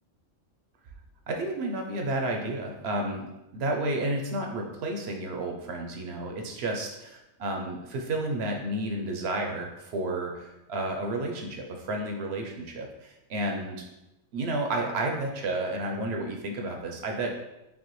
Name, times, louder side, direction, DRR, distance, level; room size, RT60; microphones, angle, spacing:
voice 1, 1.3-6.9 7.4-13.8 14.3-17.3, right 2 dB, 65° right, 2 dB, 0.8 m, -31 dB
5.3 x 2.1 x 3.0 m, 0.93 s
omnidirectional pair, 1.3 m